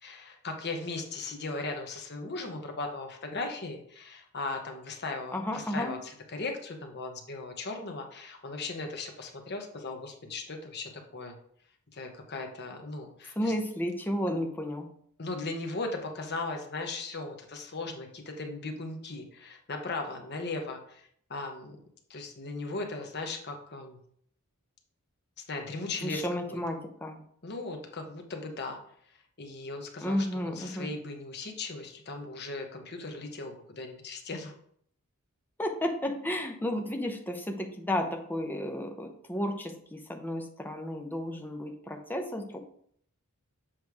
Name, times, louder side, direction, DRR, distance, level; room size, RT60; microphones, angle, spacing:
voice 1, 0.0-11.3 11.9-13.5 14.3-14.4 15.2-21.8 22.1-24.0 25.5-26.6 27.4-28.8 29.4-34.5, left 3 dB, 50° left, 3 dB, 1.0 m, -38 dB
voice 2, 5.3-5.9 13.4-14.9 26.0-27.2 30.0-30.9 35.6-42.6, left 1 dB, 10° left, 3 dB, 0.7 m, -32 dB
7.5 x 3.2 x 4.7 m, 0.64 s
head